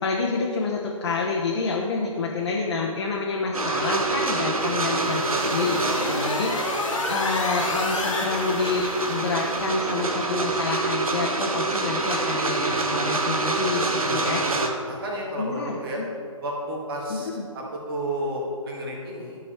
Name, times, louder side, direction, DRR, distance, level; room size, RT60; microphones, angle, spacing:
voice 1, 0.0-14.4 15.4-16.1 17.1-17.4, left 4 dB, 50° left, -2 dB, 1.0 m, -28 dB
sound 1, 3.5-14.7, right 3 dB, 85° right, 1.0 m, -26 dB
sound 2, 4.6-10.1, left 2 dB, 70° left, 1.6 m, -31 dB
voice 2, 14.0-16.0 16.4-17.3 17.5-19.4, right 1 dB, 40° right, -2 dB, 1.9 m, -32 dB
11.5 x 5.4 x 4.4 m, 2.2 s
figure-of-eight pair, 140°, 18 cm